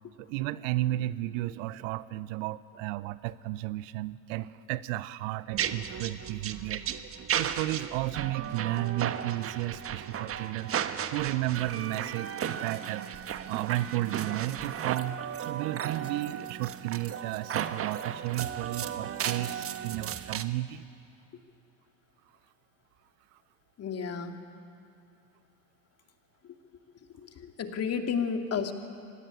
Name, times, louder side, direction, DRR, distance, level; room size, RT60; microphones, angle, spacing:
voice 1, 0.2-6.8 7.3-10.7 11.1-15.2 15.4-20.9, right 16 dB, 55° right, 17 dB, 0.9 m, -33 dB
sound 1, 5.5-20.5, right 9 dB, 30° right, 1.3 m, -35 dB
voice 2, 23.8-24.4 27.2-28.7, left 6 dB, 35° left, 5 dB, 2.5 m, -32 dB
25.0 x 18.5 x 9.8 m, 2.7 s
hypercardioid pair, 80°, 45 cm